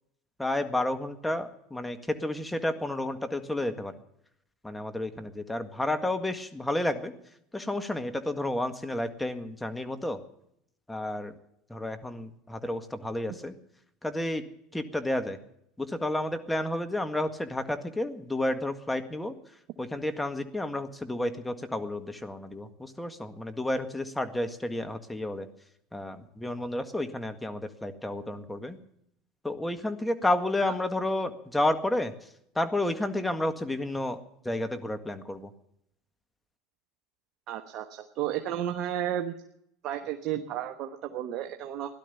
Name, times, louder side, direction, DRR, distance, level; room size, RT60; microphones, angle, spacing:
voice 1, 0.4-3.9 4.6-7.1 7.5-10.2 10.9-11.3 11.7-13.5 14.0-14.4 14.7-15.4 15.8-19.4 19.8-25.5 25.9-28.8 29.4-32.1 32.6-34.2 34.4-35.5, left 1 dB, 10° left, 7 dB, 1.8 m, -31 dB
voice 2, 37.5-39.3 39.8-41.9, right 11 dB, 55° right, 4 dB, 1.2 m, -32 dB
17.0 x 12.0 x 7.1 m, 0.74 s
hypercardioid pair, 85°, 0 cm